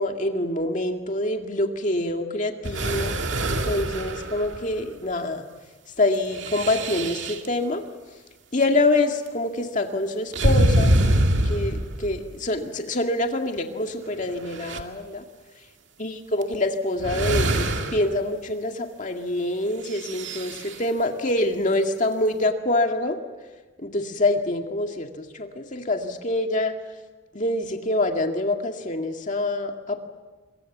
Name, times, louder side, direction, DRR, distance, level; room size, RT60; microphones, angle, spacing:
voice 1, 0.0-3.2 3.6-5.5 6.0-7.8 8.5-11.0 11.4-15.2 16.0-23.2 23.8-26.7 27.3-30.0, left 2 dB, 40° left, 4 dB, 2.1 m, -25 dB
sound 1, 2.6-4.9 6.3-7.5 10.3-12.3 13.6-13.7 14.2-14.8 16.4-16.5 17.0-18.2 19.9-20.8, right 1 dB, 65° right, 2.2 m, -24 dB
25.5 x 23.0 x 7.4 m, 1.3 s
head